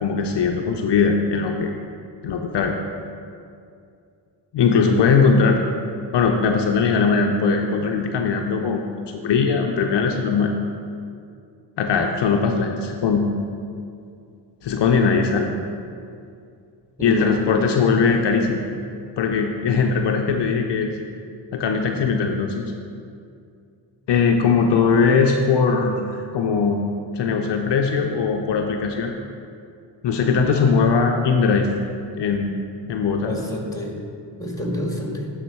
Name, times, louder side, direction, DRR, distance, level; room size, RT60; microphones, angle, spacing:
voice 1, 0.0-1.7 2.2-2.7 4.5-5.6 6.1-8.8 9.1-10.5 11.8-13.3 14.6-15.5 17.0-18.6 19.2-20.9 21.5-22.7 24.1-26.8 27.1-29.2 30.0-31.7 32.2-33.3, left 5 dB, 65° left, 3 dB, 0.7 m, -20 dB
voice 2, 17.0-17.4 18.1-18.2 33.2-34.0 34.4-35.3, left 1 dB, 5° left, 0 dB, 1.7 m, -28 dB
11.5 x 3.8 x 4.5 m, 2.4 s
cardioid pair, 60°, 45 cm